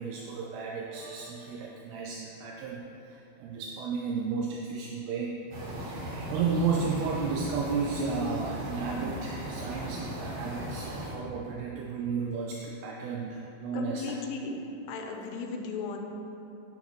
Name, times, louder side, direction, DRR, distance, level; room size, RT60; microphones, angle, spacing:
voice 1, 0.0-5.4 5.8-14.1, right 5 dB, 80° right, -1 dB, 2.6 m, -33 dB
sound 1, 5.5-11.2, equal, 55° right, 2.0 m, -37 dB
voice 2, 13.7-14.6 14.9-16.0, left 4 dB, 80° left, 3 dB, 2.8 m, -35 dB
9.7 x 9.6 x 3.1 m, 2.8 s
omnidirectional pair, 4.8 m